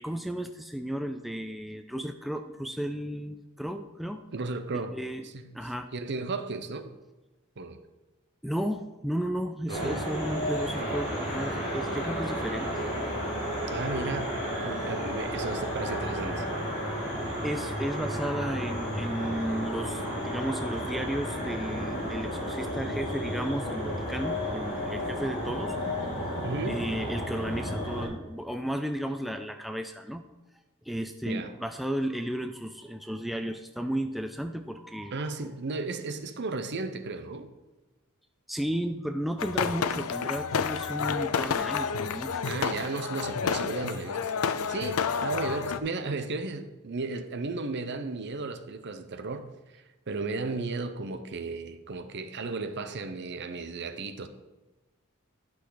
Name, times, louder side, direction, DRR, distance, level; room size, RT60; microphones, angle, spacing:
voice 1, 0.0-4.2 4.7-5.2 5.5-5.9 8.4-12.7 17.4-25.8 26.0-30.2 30.9-35.2 38.5-42.4, equal, ahead, 6 dB, 0.3 m, -34 dB
voice 2, 4.3-5.0 5.2-5.4 5.9-6.9 7.6-7.8 9.7-10.0 13.7-14.3 14.6-16.5 26.4-26.8 31.3-31.5 35.1-37.5 42.4-44.3 44.7-54.3, right 3 dB, 55° right, 9 dB, 0.7 m, -34 dB
sound 1, 9.7-28.1, equal, 35° left, 3.5 m, -32 dB
sound 2, 39.4-45.8, left 6 dB, 80° left, 0.5 m, -30 dB
11.0 x 6.1 x 3.9 m, 1.1 s
head